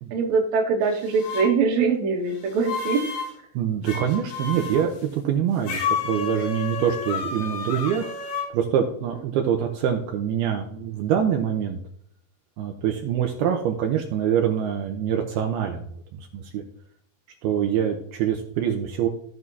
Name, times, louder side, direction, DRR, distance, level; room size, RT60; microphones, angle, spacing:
voice 1, 0.1-3.0, right 5 dB, 55° right, 0 dB, 2.3 m, -22 dB
sound 1, 0.9-1.5 2.4-3.3 3.8-4.9 5.6-8.5, left 6 dB, 60° left, 2.9 m, -30 dB
voice 2, 3.5-11.8 12.6-15.8 16.1-16.6 17.4-19.1, right 9 dB, 80° right, 3 dB, 2.5 m, -25 dB
15.5 x 6.1 x 2.8 m, 0.68 s
omnidirectional pair, 5.0 m